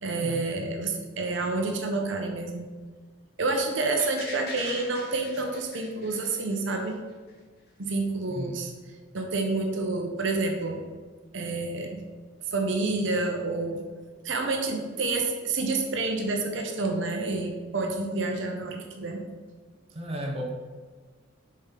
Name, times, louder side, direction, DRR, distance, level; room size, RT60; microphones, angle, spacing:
voice 1, 0.0-2.7 3.4-6.9 7.8-8.7 9.1-10.8 11.3-12.0 12.5-13.8 14.2-19.2, right 3 dB, 60° right, 3 dB, 0.7 m, -28 dB
sound 1, 4.0-6.9 7.3-7.4, left 2 dB, 50° left, 1.5 m, -41 dB
voice 2, 8.3-8.7 19.9-20.5, equal, 30° right, 0 dB, 0.8 m, -34 dB
6.6 x 4.3 x 3.8 m, 1.5 s
head